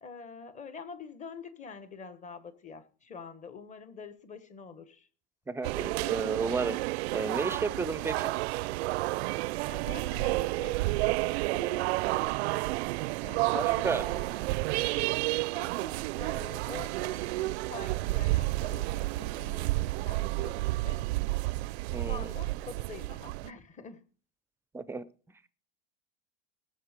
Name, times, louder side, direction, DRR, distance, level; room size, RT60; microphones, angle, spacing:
voice 1, 0.0-5.1 8.0-8.3 9.7-10.8 11.2-12.4 13.2-14.5 15.3-21.0 21.7-24.0, left 5 dB, 25° left, 12 dB, 1.3 m, -46 dB
voice 2, 5.5-6.8 7.1-8.3 13.5-14.0 21.9-22.3 24.7-25.1, right 4 dB, 10° right, 16 dB, 0.5 m, -32 dB
sound 1, 5.6-23.5, right 20 dB, 85° right, 0.5 m, -31 dB
18.5 x 6.6 x 5.1 m, 0.39 s
supercardioid pair, 145°, 31 cm